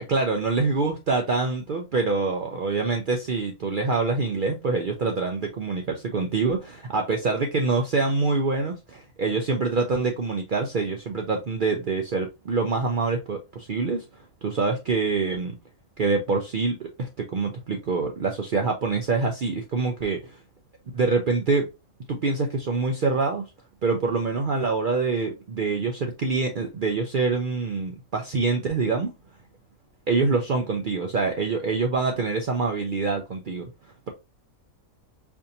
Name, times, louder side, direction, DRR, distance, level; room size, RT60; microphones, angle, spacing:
voice 1, 0.0-14.0 14.4-15.6 16.0-20.4 20.9-21.7 22.1-23.4 23.8-29.1 30.1-33.6, right 4 dB, 75° right, 0.4 m, -25 dB
4.4 x 2.7 x 2.6 m
omnidirectional pair, 1.5 m